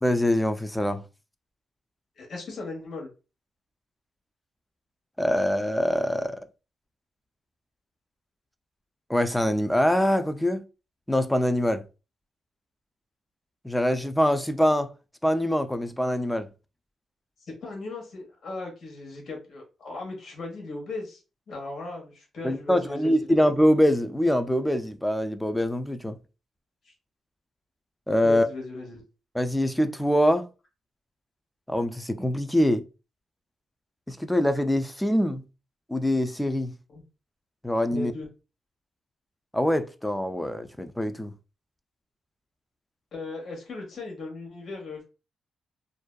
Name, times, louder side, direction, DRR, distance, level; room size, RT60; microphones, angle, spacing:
voice 1, 0.0-1.0 5.2-6.4 9.1-10.6 11.1-11.8 13.6-14.9 15.2-16.5 22.4-26.2 28.1-28.5 29.3-30.5 31.7-32.8 34.1-35.4 35.9-36.7 37.6-38.1 39.5-41.3, equal, 5° left, 0.3 m, -24 dB
voice 2, 2.2-3.1 17.4-21.2 21.5-23.2 26.8-26.9 28.2-29.0 36.9-37.0 37.9-38.3 43.1-45.0, left 2 dB, 65° left, 1.1 m, -37 dB
2.6 x 2.2 x 2.2 m
cardioid pair, 80°, 0 cm